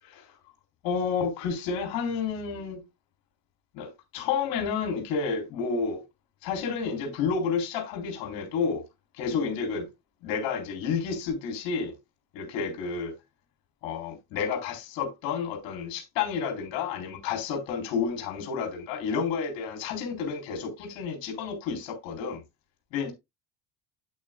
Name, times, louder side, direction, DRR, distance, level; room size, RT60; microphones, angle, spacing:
voice 1, 0.0-0.3 0.8-2.8 3.7-6.0 6.4-8.8 9.1-9.9 10.2-11.9 12.3-13.1 13.8-22.4 22.9-23.1, left 5 dB, 60° left, 4.0 m, -30 dB
8.7 x 8.6 x 2.4 m
hypercardioid pair, 60°, 49 cm